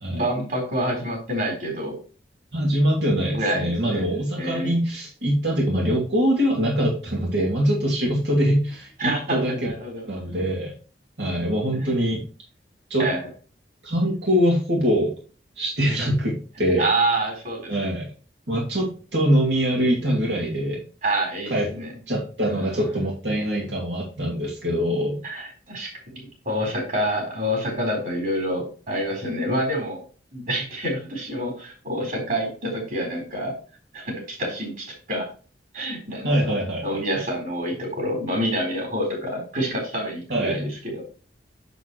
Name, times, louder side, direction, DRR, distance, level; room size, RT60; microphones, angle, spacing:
voice 1, 0.1-2.0 3.3-4.0 4.4-4.8 9.0-10.0 11.8-11.9 13.0-13.3 16.8-17.8 21.0-21.9 25.2-30.0 30.3-33.5 33.9-35.3 35.7-36.4 36.8-41.0, right 1 dB, 50° right, 1 dB, 4.0 m, -27 dB
voice 2, 2.5-9.7 10.1-10.7 11.2-12.2 12.9-13.1 13.8-15.1 15.6-16.9 17.7-18.1 18.5-20.8 21.5-21.7 22.1-25.2 36.2-37.0 40.3-40.7, equal, 80° right, -3 dB, 2.4 m, -23 dB
7.8 x 7.2 x 3.1 m, 0.37 s
head